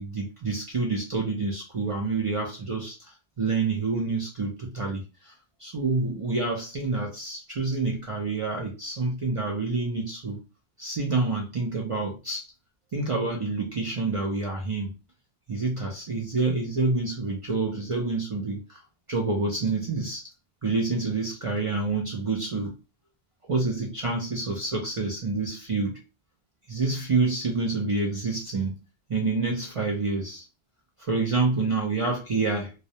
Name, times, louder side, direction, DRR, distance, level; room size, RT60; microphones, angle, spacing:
voice 1, 0.0-5.3 5.6-10.4 10.8-12.5 12.9-14.9 15.5-18.8 19.1-20.2 20.6-22.8 23.4-26.0 26.7-28.8 29.1-30.5 31.0-32.7, right 3 dB, 55° right, 0.3 m, -28 dB
2.2 x 2.0 x 2.7 m
omnidirectional pair, 1.2 m